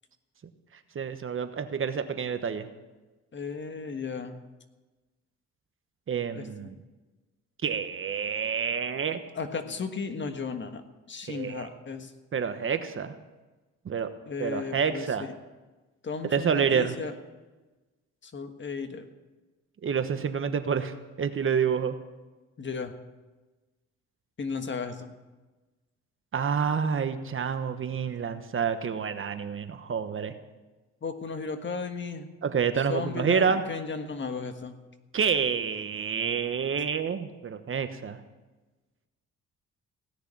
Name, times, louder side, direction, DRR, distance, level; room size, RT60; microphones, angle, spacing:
voice 1, 0.9-2.7 6.1-6.8 7.6-9.2 11.3-11.7 12.3-13.1 13.8-14.1 14.4-15.3 16.3-16.9 19.8-21.9 26.3-30.3 32.4-33.6 35.1-38.2, right 6 dB, 45° right, 9 dB, 1.2 m, -28 dB
voice 2, 3.3-4.4 6.3-6.7 9.3-10.8 11.1-12.1 14.3-15.3 16.0-17.1 18.2-19.1 22.6-22.9 24.4-25.1 31.0-32.3 32.9-34.8, left 5 dB, 40° left, 7 dB, 1.5 m, -35 dB
17.0 x 6.7 x 10.0 m, 1.2 s
cardioid pair, 90°, 30 cm